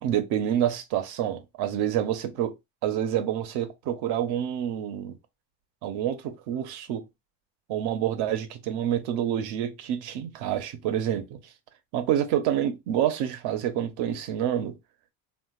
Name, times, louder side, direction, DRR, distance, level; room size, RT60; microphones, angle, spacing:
voice 1, 0.0-2.5 2.8-5.2 5.8-7.0 7.7-11.4 11.9-14.8, right 10 dB, 80° right, 0.9 m, -28 dB
3.5 x 2.5 x 2.4 m
cardioid pair, 135°, 38 cm